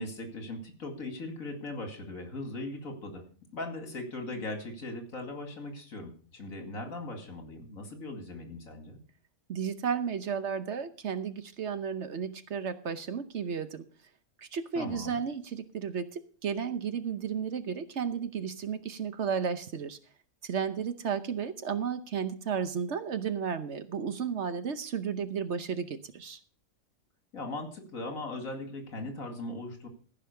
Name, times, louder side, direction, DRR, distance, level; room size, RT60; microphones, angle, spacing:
voice 1, 0.0-3.2 3.5-9.0 14.7-15.2 27.3-29.9, left 2 dB, 75° left, 5 dB, 2.8 m, -39 dB
voice 2, 9.5-13.8 14.4-20.0 20.4-26.4, right 7 dB, 55° right, 11 dB, 1.1 m, -33 dB
15.0 x 5.6 x 6.8 m, 0.41 s
omnidirectional pair, 1.5 m